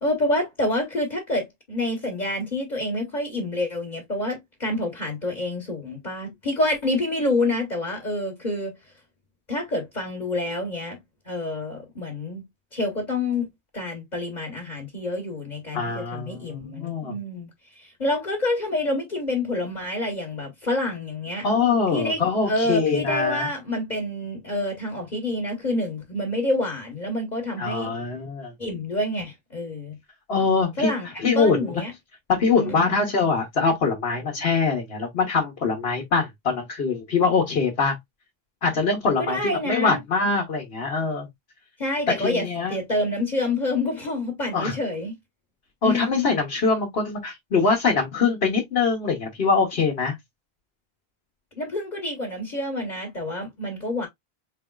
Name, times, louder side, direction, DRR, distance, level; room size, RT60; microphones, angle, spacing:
voice 1, 0.0-8.7 9.5-11.0 11.3-12.4 12.7-13.5 13.7-17.5 17.8-21.4 21.9-22.2 22.5-27.9 28.6-30.0 30.8-31.1 31.3-31.9 32.5-32.9 39.2-40.0 41.8-45.1 45.8-46.1 51.6-54.1, left 1 dB, 45° left, 1.4 m, -27 dB
voice 2, 15.7-17.2 21.4-23.5 27.6-28.5 30.3-30.9 31.2-31.8 32.3-38.0 38.6-41.3 42.1-42.8 44.5-44.8 45.8-50.1, left 4 dB, 70° left, 1.3 m, -23 dB
4.7 x 3.4 x 2.3 m
omnidirectional pair, 1.1 m